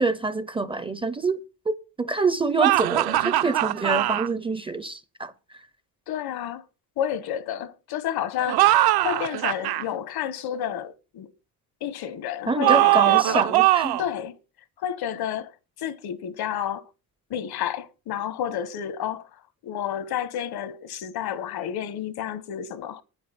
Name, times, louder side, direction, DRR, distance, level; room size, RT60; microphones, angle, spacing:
voice 1, 0.0-1.4 1.7-1.8 2.0-5.3 12.5-14.0, right 3 dB, 15° right, 0.5 m, -26 dB
sound 1, 2.6-4.3 8.4-9.8 12.6-14.1, right 16 dB, 70° right, 0.7 m, -21 dB
voice 2, 6.1-6.6 7.0-11.3 11.8-13.5 14.0-14.3 14.8-15.5 15.8-16.9 17.3-23.0, left 10 dB, 70° left, 1.1 m, -30 dB
9.6 x 7.9 x 6.8 m
cardioid pair, 170°, 39 cm